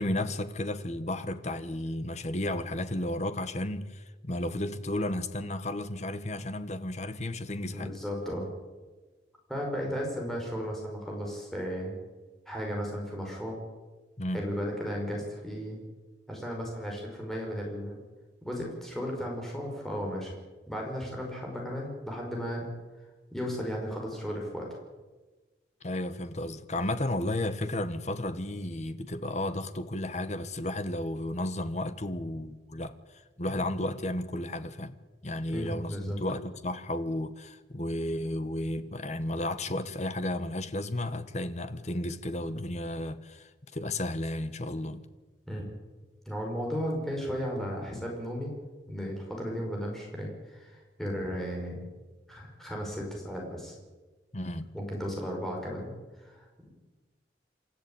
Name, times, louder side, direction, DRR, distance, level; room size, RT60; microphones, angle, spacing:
voice 1, 0.0-7.9 14.2-14.5 25.8-32.9 33.4-34.9 35.2-45.0 54.3-54.7, left 1 dB, 40° left, 1.4 m, -33 dB
voice 2, 7.7-8.5 9.5-11.9 12.5-13.6 14.3-15.8 16.3-18.0 18.4-20.3 20.7-22.7 23.3-24.7 35.5-36.2 45.5-45.7 46.3-48.5 48.9-51.7 52.3-53.8 54.7-55.9 56.2-56.7, equal, ahead, 5.3 m, -35 dB
28.0 x 14.0 x 8.8 m
head